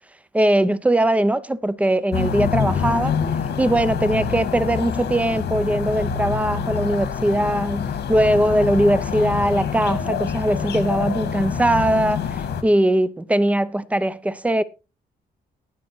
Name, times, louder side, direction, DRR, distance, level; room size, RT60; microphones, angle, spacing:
voice 1, 0.3-3.2 3.6-14.6, right 1 dB, 10° right, 0.6 m, -20 dB
amb ext residential doves birds distant cars quad, 2.1-12.6, left 7 dB, 90° left, 1.9 m, -26 dB
19.0 x 6.4 x 3.1 m
cardioid pair, 145°, 17 cm